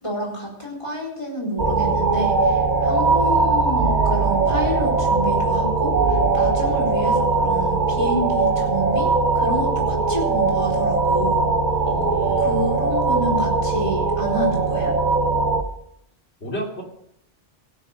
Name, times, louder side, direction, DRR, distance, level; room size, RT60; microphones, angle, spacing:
voice 1, 0.0-11.5 12.4-14.9, equal, 30° left, -3 dB, 4.2 m, -28 dB
sound 1, 1.6-15.6, right 3 dB, 45° right, 1.3 m, -20 dB
voice 2, 11.9-12.7 16.4-16.8, right 1 dB, 75° left, -1 dB, 3.3 m, -29 dB
17.5 x 6.8 x 6.5 m, 0.74 s
omnidirectional pair, 1.1 m